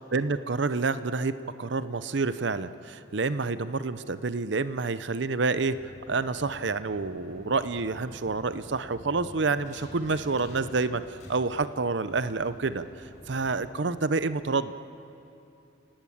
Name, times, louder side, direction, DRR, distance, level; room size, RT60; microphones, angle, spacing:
voice 1, 0.1-1.3 1.6-5.8 6.1-12.9 13.3-14.7, right 4 dB, 65° right, 13 dB, 0.7 m, -28 dB
sound 1, 5.5-13.7, equal, 40° left, 5.9 m, -48 dB
30.0 x 18.0 x 8.7 m, 2.8 s
head